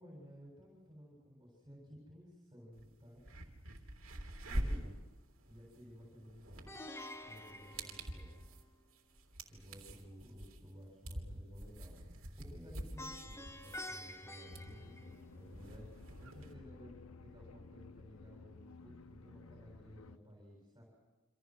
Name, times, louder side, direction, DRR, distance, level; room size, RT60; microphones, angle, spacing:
voice 1, 0.0-3.2 4.5-5.0 5.4-6.8 7.2-8.4 9.5-15.9 16.2-16.9 17.2-20.8, equal, 20° right, -2 dB, 7.2 m, -55 dB
sound 1, 2.7-2.8 3.2-16.5, right 1 dB, 70° right, 3.4 m, -46 dB
Plucked string instrument, 6.7-8.8 13.0-15.6, left 1 dB, 15° left, 1.3 m, -49 dB
sound 2, 14.4-20.2, left 4 dB, 85° left, 0.9 m, -55 dB
27.5 x 26.5 x 6.3 m, 1.2 s
head